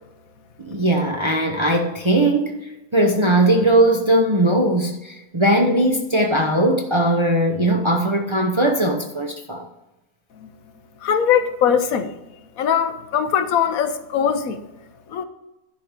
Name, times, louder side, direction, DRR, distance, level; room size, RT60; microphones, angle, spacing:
voice 1, 0.6-9.7, right 1 dB, 25° right, 0.7 m, -19 dB
voice 2, 11.0-12.2 12.6-14.6 15.1-15.2, left 8 dB, 75° left, 1.2 m, -20 dB
11.5 x 4.6 x 6.7 m
omnidirectional pair, 1.5 m